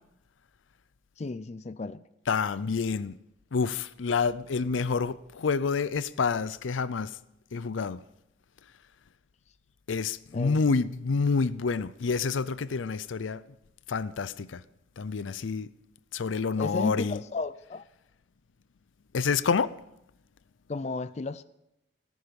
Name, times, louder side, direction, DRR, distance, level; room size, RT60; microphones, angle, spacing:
voice 1, 1.2-2.0 10.3-10.6 16.6-17.8 20.7-21.4, left 3 dB, 35° left, 0.4 m, -33 dB
voice 2, 2.3-3.2 3.5-7.1 7.5-8.0 9.9-13.4 13.9-14.6 15.0-15.7 16.1-17.2 19.1-19.7, left 5 dB, 85° left, 0.5 m, -28 dB
14.5 x 14.5 x 5.2 m
head